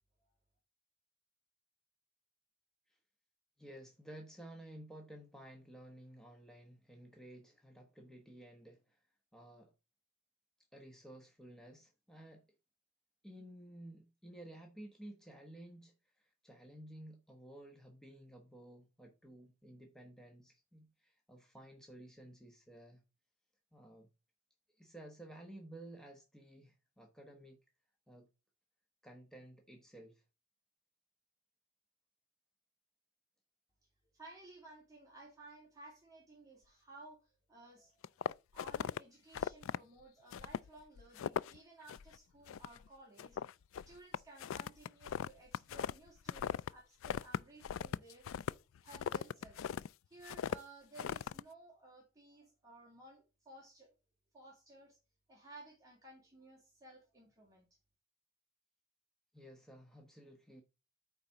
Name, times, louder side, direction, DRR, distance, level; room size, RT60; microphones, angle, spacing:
voice 1, 3.6-9.7 10.7-12.5 13.2-23.0 23.7-24.1 24.7-27.6 28.1-28.3 29.0-30.2 59.3-60.6, right 1 dB, 5° left, 1.0 m, -54 dB
voice 2, 34.1-38.2 38.5-43.6 43.9-48.3 48.8-49.7 50.1-53.9 54.3-55.0 55.3-57.7, right 2 dB, 15° right, 2.4 m, -57 dB
sound 1, 38.0-39.0 39.3-39.8 40.3-40.7 41.0-41.6 41.9-42.2 42.5-42.9 43.2-46.7 47.0-49.9 50.2-50.6 51.0-51.4, left 8 dB, 70° left, 0.3 m, -39 dB
8.9 x 4.1 x 5.7 m
head